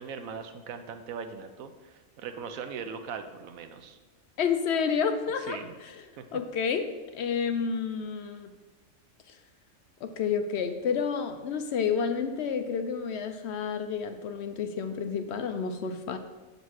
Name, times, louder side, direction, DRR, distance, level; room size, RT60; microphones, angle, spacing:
voice 1, 0.0-4.0 5.4-5.8 6.2-6.3, right 6 dB, 85° right, 8 dB, 1.1 m, -40 dB
voice 2, 4.4-6.0 6.3-6.9 7.1-8.5 10.0-16.2, left 6 dB, 65° left, 7 dB, 0.7 m, -30 dB
6.8 x 4.1 x 6.2 m, 1.2 s
omnidirectional pair, 1.4 m